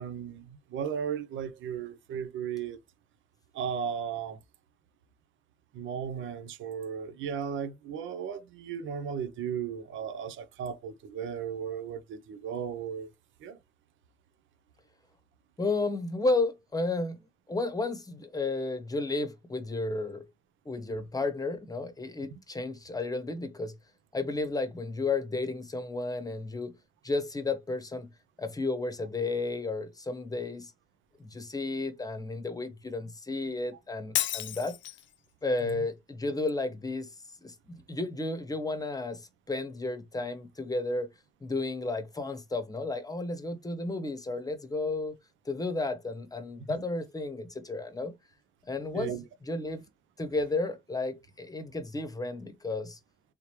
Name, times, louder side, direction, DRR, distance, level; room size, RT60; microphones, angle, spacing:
voice 1, 0.0-2.8 3.5-4.4 5.7-13.1 13.4-13.6 22.3-22.4 35.6-35.8 46.7-46.8 48.9-49.2, right 7 dB, 75° right, 0.6 m, -35 dB
voice 2, 15.6-17.2 17.5-20.2 20.6-23.7 24.1-26.7 27.0-28.1 28.4-30.7 31.2-34.8 35.4-37.1 37.4-37.5 37.9-41.1 41.4-45.2 45.4-48.1 48.7-49.1 49.5-49.8 50.2-53.0, left 3 dB, 20° left, 0.9 m, -32 dB
Shatter, 34.1-35.1, left 13 dB, 70° left, 0.6 m, -31 dB
3.6 x 3.2 x 2.9 m
cardioid pair, 90°, 20 cm